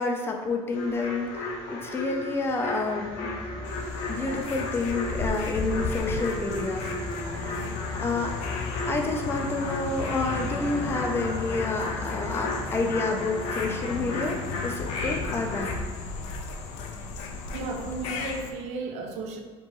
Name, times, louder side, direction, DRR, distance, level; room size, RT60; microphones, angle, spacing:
voice 1, 0.0-3.3 4.1-6.8 8.0-8.3 8.9-15.7, left 3 dB, 20° left, 2 dB, 0.4 m, -29 dB
sound 1, 0.7-15.8, left 2 dB, 65° left, 0.8 m, -35 dB
sound 2, 2.5-14.3, left 1 dB, 5° left, 0.9 m, -41 dB
sound 3, 3.6-18.5, left 4 dB, 80° left, 0.5 m, -35 dB
voice 2, 17.5-19.4, right 3 dB, 75° right, 4 dB, 0.6 m, -34 dB
4.4 x 2.9 x 3.0 m, 1.3 s
cardioid pair, 160°, 12 cm